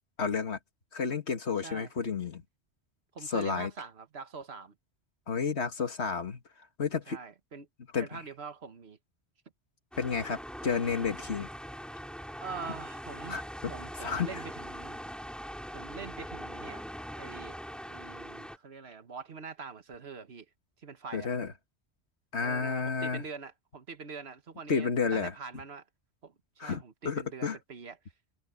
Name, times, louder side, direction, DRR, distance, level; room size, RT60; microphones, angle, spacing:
voice 1, 0.2-0.6 0.9-2.4 3.3-3.7 5.3-6.4 6.8-7.2 7.9-8.2 10.0-11.5 13.3-13.7 14.0-14.3 21.1-21.5 22.3-23.2 24.7-25.3 26.6-27.6, left 5 dB, 80° left, 2.1 m, -31 dB
voice 2, 3.1-4.7 7.1-7.7 8.0-9.0 12.4-15.0 15.7-16.8 17.2-20.5 20.8-21.3 22.4-25.8 26.2-26.3 26.6-28.0, right 5 dB, 70° right, 1.6 m, -44 dB
sound 1, 9.9-18.6, equal, ahead, 5.2 m, -42 dB
omnidirectional pair, 1.1 m